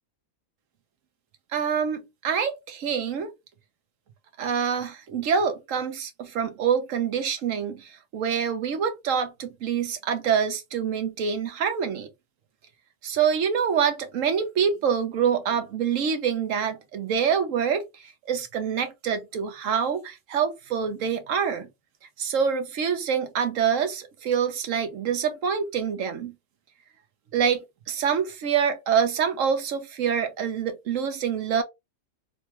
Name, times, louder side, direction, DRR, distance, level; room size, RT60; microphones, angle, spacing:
voice 1, 1.5-3.3 4.4-12.1 13.0-21.7 22.2-26.3 27.3-31.6, right 7 dB, 75° right, 1.1 m, -26 dB
3.1 x 2.3 x 2.8 m
omnidirectional pair, 1.4 m